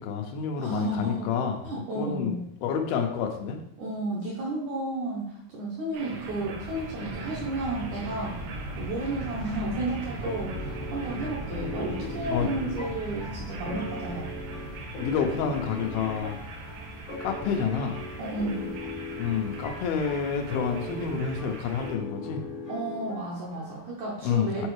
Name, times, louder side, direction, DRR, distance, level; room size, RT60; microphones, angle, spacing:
voice 1, 0.0-2.3 2.6-3.6 12.3-12.6 15.0-16.4 17.2-18.0 19.2-22.5 24.2-24.7, left 6 dB, 80° left, 3 dB, 2.4 m, -29 dB
voice 2, 0.5-1.3 1.6-2.5 3.8-8.4 8.8-14.3 18.2-18.8 22.7-24.7, right 2 dB, 70° right, -3 dB, 1.9 m, -32 dB
sound 1, 5.9-21.9, right 1 dB, 90° right, 1.6 m, -39 dB
sound 2, 6.6-21.9, right 1 dB, 25° left, 0.8 m, -46 dB
sound 3, 10.2-23.9, left 2 dB, 60° left, 1.2 m, -39 dB
7.1 x 4.4 x 3.1 m, 0.74 s
omnidirectional pair, 4.4 m